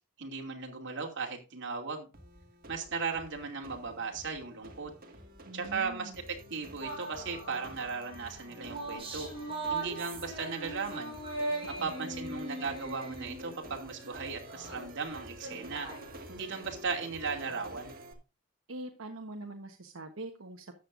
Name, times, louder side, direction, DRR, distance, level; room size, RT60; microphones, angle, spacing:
voice 1, 0.2-2.1 2.7-4.9 5.5-9.3 9.7-11.1 11.7-15.9 16.3-17.9, right 4 dB, 60° right, 2 dB, 2.7 m, -37 dB
sound 1, 2.1-18.1, equal, 45° right, 1.9 m, -50 dB
voice 2, 5.4-6.2 11.5-12.3 18.7-20.7, right 2 dB, 85° right, 3 dB, 1.2 m, -44 dB
sound 2, 6.8-12.9, left 3 dB, 25° left, 6.5 m, -58 dB
sound 3, 6.8-7.6 8.3-14.1 14.4-16.3, right 2 dB, 25° right, 7.0 m, -39 dB
13.0 x 8.9 x 2.6 m, 0.31 s
head